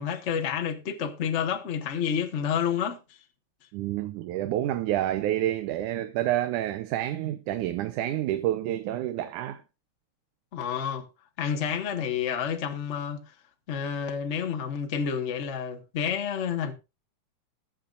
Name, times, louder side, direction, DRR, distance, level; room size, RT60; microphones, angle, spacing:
voice 1, 0.0-3.0 10.5-11.1 11.4-13.2 13.7-16.7, left 7 dB, 40° left, 1.0 m, -29 dB
voice 2, 3.7-9.6, right 13 dB, 80° right, 2.3 m, -28 dB
21.0 x 7.5 x 2.5 m
omnidirectional pair, 3.5 m